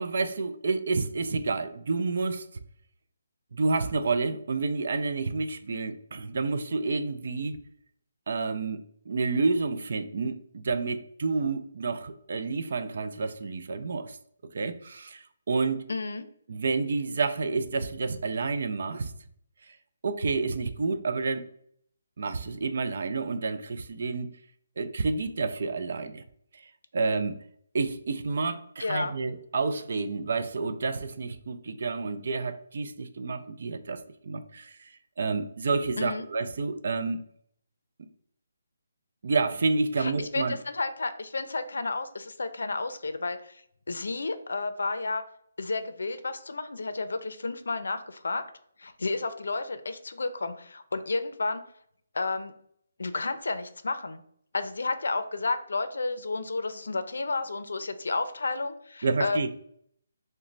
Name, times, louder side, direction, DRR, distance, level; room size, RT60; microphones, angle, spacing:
voice 1, 0.0-2.4 3.5-7.6 8.3-14.2 14.5-15.8 16.5-19.1 20.0-21.5 22.2-24.3 24.8-26.2 26.9-27.4 27.7-34.9 35.2-37.2 39.2-40.6 59.0-59.5, right 4 dB, 50° right, 10 dB, 0.3 m, -29 dB
voice 2, 15.9-16.3 28.8-29.2 36.0-36.2 40.0-43.6 43.9-45.2 45.6-48.4 48.8-51.6 52.1-52.5 53.0-54.2 54.5-59.5, left 3 dB, 80° left, 10 dB, 0.4 m, -31 dB
3.1 x 2.1 x 3.8 m, 0.66 s
hypercardioid pair, 175°, 0 cm